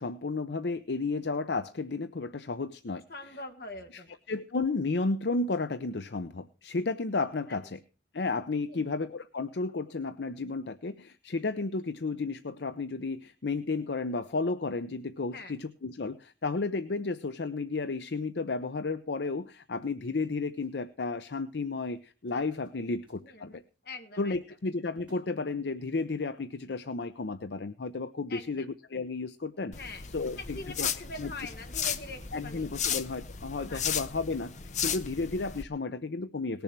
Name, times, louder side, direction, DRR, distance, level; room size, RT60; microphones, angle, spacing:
voice 1, 0.0-3.0 3.9-4.0 4.3-7.8 8.1-23.6 24.2-29.7 30.1-30.9 31.2-31.3 32.3-36.6, left 3 dB, 75° left, 12 dB, 0.7 m, -33 dB
voice 2, 3.1-4.2 7.5-7.7 8.7-8.9 15.3-15.5 22.7-24.4 28.3-28.7 29.7-30.0 30.4-32.7 33.7-33.8, left 2 dB, 60° left, 5 dB, 2.0 m, -43 dB
sound 1, 19.8-20.8 21.0-21.3 21.8-22.0 22.3-23.8 24.2-24.3 24.6-26.0, right 1 dB, 5° right, 6.9 m, -62 dB
sound 2, 29.7-35.6, left 8 dB, 45° left, 0.8 m, -35 dB
19.0 x 7.0 x 5.9 m, 0.35 s
head